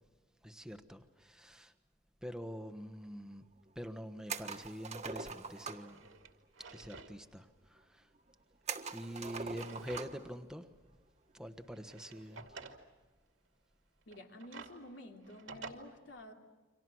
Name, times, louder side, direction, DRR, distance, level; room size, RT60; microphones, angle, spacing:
voice 1, 0.4-1.7 2.2-3.5 3.7-6.1 6.7-8.0 8.9-10.7 11.3-12.4, equal, 5° right, 7 dB, 1.3 m, -45 dB
sound 1, 4.3-5.9 8.7-10.3 10.6-10.7 12.3-12.6, right 5 dB, 35° right, 1.5 m, -43 dB
Drawer open or close, 5.8-7.1 7.5-7.6 8.6-10.4 10.8-10.9 11.6-12.8 14.0-15.7, right 4 dB, 90° right, 2.4 m, -52 dB
voice 2, 14.0-16.3, left 1 dB, 70° left, 2 dB, 3.0 m, -51 dB
30.0 x 25.0 x 6.3 m, 1.3 s
head